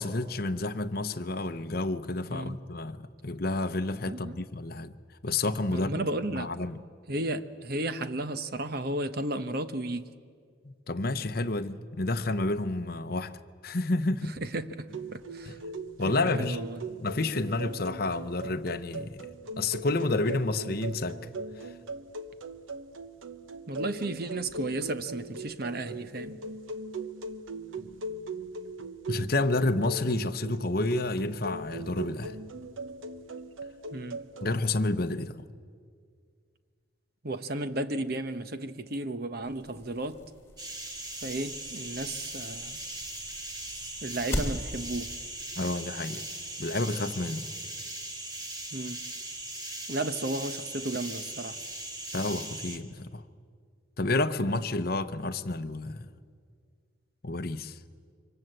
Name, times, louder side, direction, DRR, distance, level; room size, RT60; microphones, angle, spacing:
voice 1, 0.0-4.9 5.2-6.0 6.3-6.8 10.6-14.4 15.5-15.6 16.0-16.6 17.0-19.3 19.6-21.3 21.6-21.7 29.1-32.4 34.4-35.3 45.6-46.2 46.6-47.5 52.1-53.2 54.0-56.1 57.2-57.8, left 2 dB, 45° left, 0.8 m, -30 dB
voice 2, 2.3-2.6 4.1-4.4 5.7-6.5 7.1-10.1 14.4-15.6 16.0-16.8 23.7-26.4 33.9-34.2 37.2-40.2 41.2-42.8 44.0-45.2 48.7-49.0 49.9-51.6 54.4-54.5, right 1 dB, 50° right, 0.9 m, -34 dB
sound 1, 14.9-34.5, right 2 dB, 80° right, 1.0 m, -40 dB
sound 2, 39.4-45.0, left 1 dB, 15° left, 3.4 m, -40 dB
sound 3, 40.6-52.8, right 1 dB, 20° right, 1.8 m, -39 dB
26.5 x 24.5 x 7.9 m
head